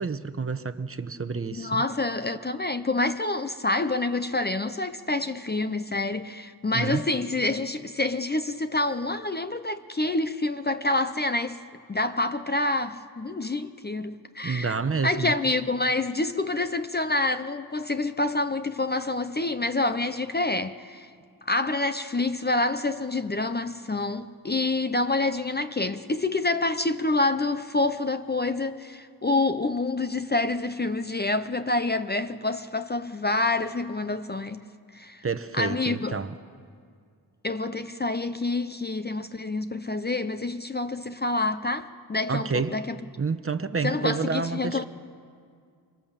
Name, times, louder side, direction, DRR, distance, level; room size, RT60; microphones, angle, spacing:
voice 1, 0.0-1.8 6.7-7.0 14.4-15.3 35.2-36.3 42.3-42.8 43.2-44.9, right 5 dB, 35° right, 0.9 m, -29 dB
voice 2, 1.5-11.6 11.9-14.7 15.0-21.1 21.5-34.6 34.9-35.2 35.5-36.2 37.4-43.0 43.8-44.9, left 2 dB, 25° left, 0.6 m, -27 dB
25.5 x 25.0 x 7.4 m
wide cardioid pair, 145°, 40 cm